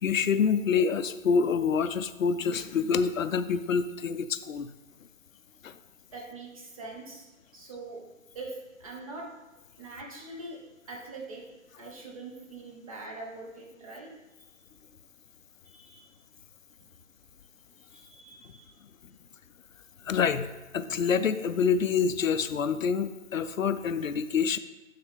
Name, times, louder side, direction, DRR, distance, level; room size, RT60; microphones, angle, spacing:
voice 1, 0.0-4.7 5.6-5.7 20.0-20.5 20.7-24.6, left 6 dB, 75° left, 12 dB, 0.6 m, -26 dB
voice 2, 6.1-8.0 8.3-9.3 9.8-10.6 10.9-11.4 11.8-14.1 14.4-14.5 15.6-16.1 17.9-18.7, right 2 dB, 25° right, -1 dB, 1.0 m, -43 dB
10.5 x 4.1 x 3.5 m, 1.1 s
figure-of-eight pair, 160°, 40 cm